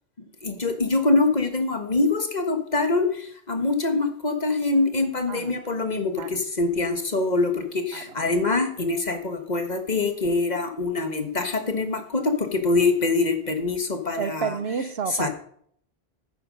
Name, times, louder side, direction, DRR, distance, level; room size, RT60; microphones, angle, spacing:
voice 1, 0.4-14.6 15.2-15.3, left 3 dB, 40° left, 6 dB, 1.5 m, -24 dB
voice 2, 14.2-15.3, right 6 dB, 75° right, 13 dB, 1.1 m, -30 dB
11.0 x 9.4 x 5.3 m, 0.63 s
omnidirectional pair, 1.1 m